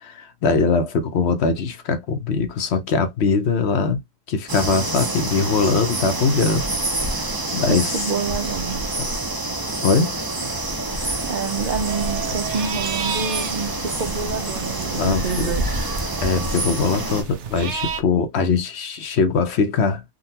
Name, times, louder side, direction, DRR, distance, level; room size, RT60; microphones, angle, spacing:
voice 1, 0.0-4.0 4.3-6.7 7.0-7.2 7.5-8.1 9.0-9.1 9.8-10.2 10.9-11.2 14.9-15.5 16.2-20.0, left 4 dB, 60° left, 0.8 m, -21 dB
sound 1, 4.5-17.2, right 2 dB, 25° right, 0.5 m, -27 dB
voice 2, 7.7-8.8 11.2-15.7, right 5 dB, 90° right, 0.4 m, -28 dB
sound 2, 11.8-18.0, right 5 dB, 65° right, 0.9 m, -32 dB
3.8 x 2.3 x 2.7 m
omnidirectional pair, 1.4 m